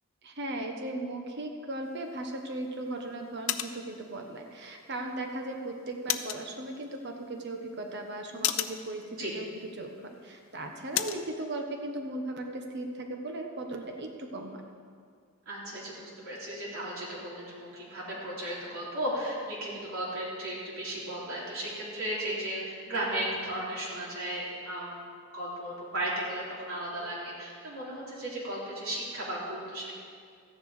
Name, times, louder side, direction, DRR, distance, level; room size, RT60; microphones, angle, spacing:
voice 1, 0.2-9.9 10.2-14.6, right 2 dB, 50° right, 3 dB, 1.3 m, -37 dB
sound 1, 1.8-11.3, left 11 dB, 65° left, 0.6 m, -38 dB
voice 2, 15.5-29.9, right 1 dB, 70° right, -6 dB, 3.6 m, -35 dB
14.0 x 10.0 x 5.0 m, 2.1 s
head